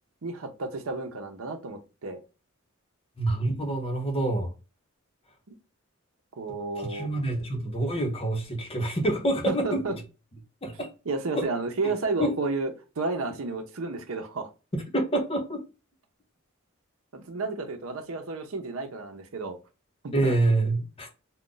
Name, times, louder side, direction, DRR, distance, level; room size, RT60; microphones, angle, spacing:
voice 1, 0.2-2.2 6.3-7.1 9.5-9.9 11.1-14.5 17.1-19.6 20.0-20.4, right 3 dB, 80° right, 0.7 m, -32 dB
voice 2, 3.2-4.5 6.8-10.0 10.6-10.9 11.3-11.5 12.2-12.3 14.7-15.6 20.1-21.1, right 2 dB, 30° left, 0.8 m, -27 dB
2.5 x 2.2 x 3.8 m
head